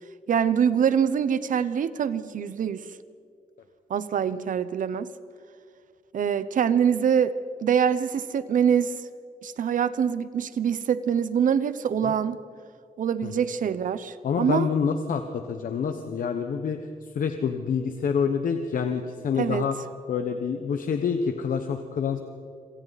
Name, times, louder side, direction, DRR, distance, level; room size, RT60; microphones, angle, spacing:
voice 1, 0.3-2.8 3.9-5.1 6.1-7.3 7.6-8.9 9.4-12.4 13.0-14.7 19.4-19.6, right 8 dB, 65° right, 14 dB, 0.9 m, -24 dB
voice 2, 14.2-19.7 20.1-22.2, left 6 dB, 70° left, 6 dB, 1.2 m, -27 dB
27.0 x 26.5 x 4.2 m, 2.3 s
wide cardioid pair, 150°, 14 cm